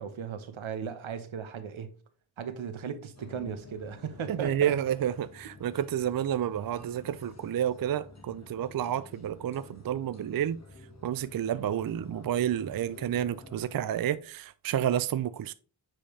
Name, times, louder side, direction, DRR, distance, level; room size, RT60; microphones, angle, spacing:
voice 1, 0.0-1.9 2.4-4.7, right 7 dB, 80° right, 1.0 m, -37 dB
sound 1, 3.2-13.8, left 2 dB, 35° left, 1.5 m, -50 dB
voice 2, 4.3-10.6 11.0-15.5, right 10 dB, 50° right, 0.4 m, -30 dB
7.6 x 5.0 x 3.2 m
cardioid pair, 65°, 47 cm